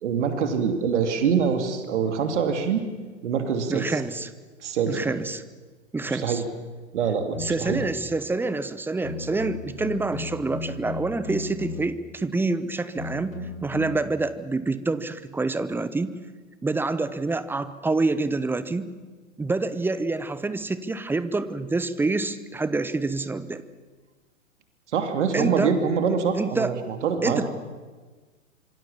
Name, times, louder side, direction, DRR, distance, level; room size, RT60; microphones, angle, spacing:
voice 1, 0.0-2.9 3.2-4.0 4.6-5.2 6.1-6.4 6.9-7.8 24.9-27.4, right 6 dB, 60° right, 6 dB, 2.9 m, -25 dB
voice 2, 3.7-4.3 4.9-5.4 5.9-6.4 7.4-16.2 16.6-18.9 19.4-23.6 25.3-25.7 26.3-26.7 27.2-27.5, right 3 dB, 5° right, 14 dB, 0.8 m, -27 dB
sound 1, 7.3-8.1 9.0-12.1 13.0-14.0, left 3 dB, 80° left, 5.5 m, -36 dB
26.5 x 24.0 x 7.3 m, 1.3 s
figure-of-eight pair, 110°, 40 cm